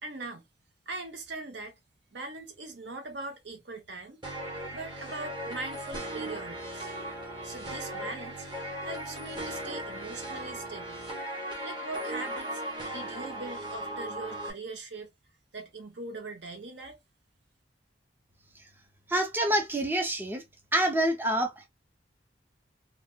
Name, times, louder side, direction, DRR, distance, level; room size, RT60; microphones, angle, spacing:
voice 1, 0.0-0.4 0.9-1.8 2.1-4.2 4.7-6.9 7.4-8.5 8.8-11.0 11.6-12.6 12.9-15.1 15.5-17.0, right 3 dB, 70° right, 0.8 m, -41 dB
sound 1, 4.2-14.5, right 1 dB, 25° right, 0.9 m, -37 dB
voice 2, 19.1-20.4 20.7-21.7, right 1 dB, 10° right, 0.5 m, -27 dB
3.3 x 2.2 x 2.2 m
head